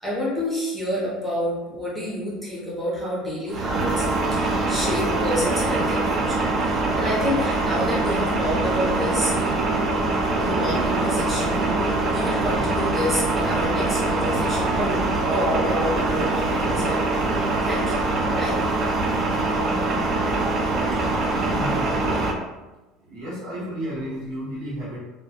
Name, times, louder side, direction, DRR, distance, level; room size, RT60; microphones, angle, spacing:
voice 1, 0.0-4.0 4.3-9.3 10.3-17.0 17.6-18.6, equal, ahead, -8 dB, 0.7 m, -29 dB
sound 1, 3.5-22.3, right 2 dB, 30° right, 0.3 m, -23 dB
voice 2, 20.9-22.3 23.0-25.0, equal, 65° right, -6 dB, 0.9 m, -33 dB
2.1 x 2.1 x 2.8 m, 1.1 s
cardioid pair, 160°, 0 cm